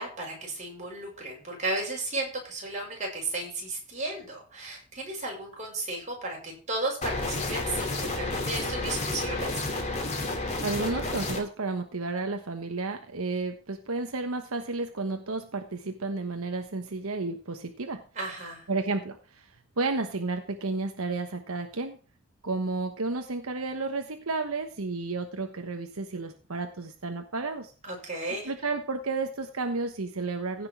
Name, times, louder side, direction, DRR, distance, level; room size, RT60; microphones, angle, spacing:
voice 1, 0.0-9.5 18.1-18.6 27.8-28.5, right 2 dB, 35° right, -1 dB, 6.2 m, -34 dB
sound 1, 7.0-11.4, left 2 dB, 30° left, 2.9 m, -31 dB
voice 2, 10.6-18.0 18.7-19.5 19.8-22.0 22.4-27.7 28.4-30.7, right 3 dB, 75° right, 6 dB, 1.2 m, -32 dB
16.0 x 6.1 x 4.6 m, 0.37 s
head